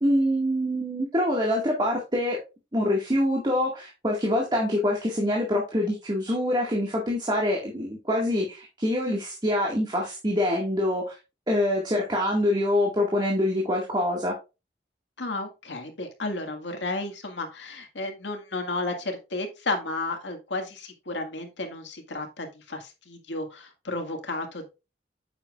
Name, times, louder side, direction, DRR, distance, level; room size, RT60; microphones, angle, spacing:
voice 1, 0.0-2.4 2.7-11.1 11.5-14.3, left 1 dB, 25° right, -1 dB, 1.9 m, -25 dB
voice 2, 15.2-24.7, left 2 dB, 90° left, 4 dB, 1.9 m, -33 dB
8.9 x 7.3 x 2.4 m, 0.28 s
head